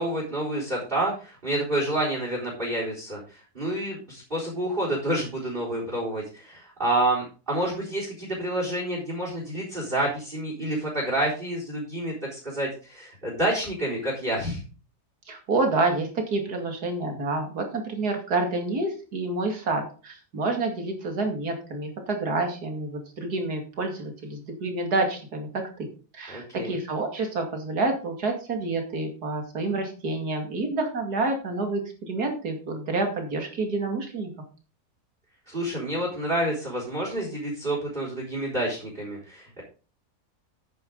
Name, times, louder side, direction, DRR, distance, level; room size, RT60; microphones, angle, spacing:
voice 1, 0.0-14.6 26.3-26.8 35.5-39.6, right 1 dB, 35° right, -2 dB, 4.4 m, -28 dB
voice 2, 15.3-25.9 26.1-34.3, right 3 dB, 80° right, 4 dB, 2.8 m, -28 dB
9.6 x 9.6 x 3.9 m, 0.36 s
omnidirectional pair, 1.7 m